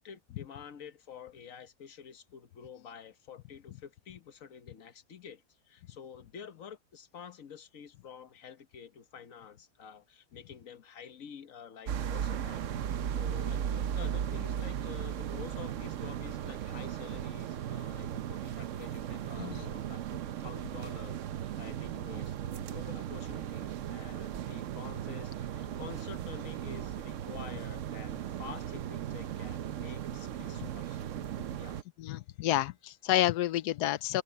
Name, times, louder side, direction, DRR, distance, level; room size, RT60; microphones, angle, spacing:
voice 1, 0.0-12.7 13.1-31.2 31.6-31.8, left 7 dB, 60° left, 1.5 m, -49 dB
sound 1, 11.9-31.8, right 10 dB, 60° right, 1.0 m, -37 dB
voice 2, 32.0-34.2, left 14 dB, 85° left, 1.2 m, -29 dB
open air
omnidirectional pair, 1.7 m